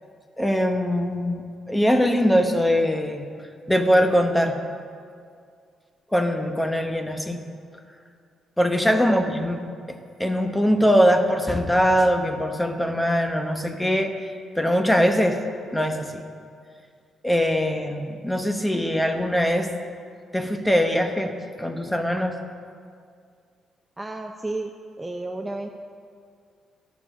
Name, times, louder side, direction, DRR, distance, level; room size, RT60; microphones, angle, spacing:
voice 1, 0.4-1.4 1.7-3.3 3.7-4.6 6.1-7.4 8.6-9.6 10.2-14.1 14.6-15.4 15.7-16.2 17.2-19.7 20.3-21.3 21.6-22.4, equal, 5° left, 6 dB, 1.0 m, -21 dB
voice 2, 24.0-24.7 25.0-25.7, right 2 dB, 15° right, 3 dB, 0.6 m, -31 dB
11.0 x 7.1 x 6.0 m, 2.2 s
cardioid pair, 90°, 0 cm